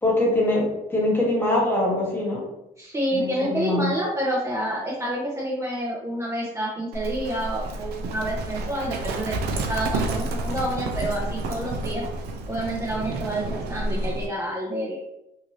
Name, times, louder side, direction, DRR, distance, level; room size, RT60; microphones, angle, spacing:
voice 1, 0.0-2.4 3.1-3.9, left 1 dB, 10° left, -3 dB, 1.0 m, -23 dB
voice 2, 2.8-9.4 9.7-12.0 12.5-15.0, right 1 dB, 15° right, -5 dB, 0.6 m, -28 dB
Livestock farm animals working animals, 6.9-14.3, right 2 dB, 70° right, 0.5 m, -30 dB
2.7 x 2.5 x 3.0 m, 0.86 s
cardioid pair, 110°, 17 cm